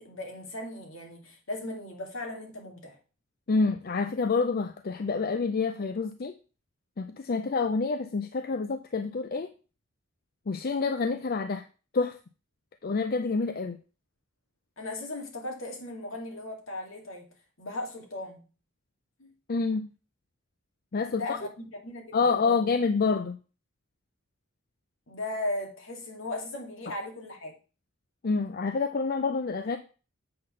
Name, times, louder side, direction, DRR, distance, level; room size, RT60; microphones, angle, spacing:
voice 1, 0.0-3.0 14.8-17.3 17.6-18.4 19.2-19.3 21.1-22.7 25.1-27.5, left 2 dB, 70° left, 2.2 m, -37 dB
voice 2, 3.5-6.3 7.0-9.5 10.5-11.6 11.9-12.2 12.8-13.8 19.5-19.9 20.9-21.2 22.1-23.4 28.2-29.8, left 4 dB, 45° left, 0.5 m, -27 dB
7.8 x 3.9 x 6.4 m
head